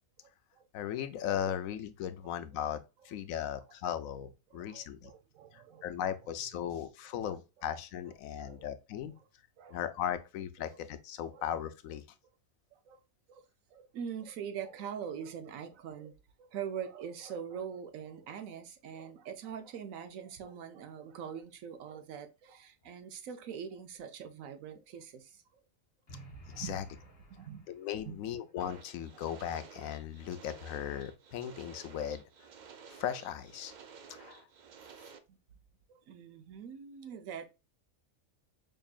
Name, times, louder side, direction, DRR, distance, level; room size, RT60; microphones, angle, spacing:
voice 1, 0.7-5.1 5.5-9.1 9.7-12.0 26.6-26.8 27.7-32.2 32.9-33.7 34.1-34.4, left 10 dB, 90° left, 1.0 m, -37 dB
voice 2, 4.5-6.2 6.6-6.7 7.1-7.7 8.0-8.7 9.6-9.8 10.6-10.8 11.3-11.4 12.7-13.0 13.3-25.6 26.5-26.9 27.3-27.7 28.1-28.2 35.1-35.4 35.9-37.5, right 8 dB, 90° right, 1.1 m, -44 dB
sound 1, 26.1-28.1, right 2 dB, 50° left, 1.3 m, -52 dB
sound 2, 28.6-35.2, right 6 dB, 70° right, 0.4 m, -53 dB
5.2 x 2.7 x 2.4 m
omnidirectional pair, 1.4 m